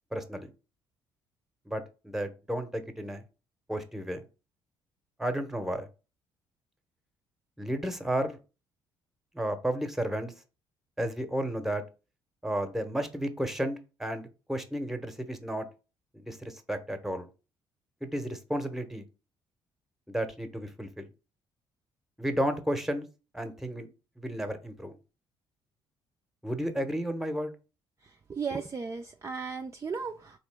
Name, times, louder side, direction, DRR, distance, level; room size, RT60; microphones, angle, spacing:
voice 1, 0.1-0.5 1.7-3.2 3.7-4.2 5.2-5.9 7.6-8.4 9.3-10.3 11.0-11.8 12.4-15.7 16.1-17.3 18.0-19.0 20.1-21.1 22.2-23.1 23.3-23.9 24.2-25.0 26.4-27.5, right 1 dB, 5° right, 8 dB, 0.8 m, -32 dB
voice 2, 28.3-30.4, right 5 dB, 25° right, 4 dB, 0.4 m, -35 dB
3.6 x 2.9 x 3.4 m, 0.31 s
hypercardioid pair, 55°, 11 cm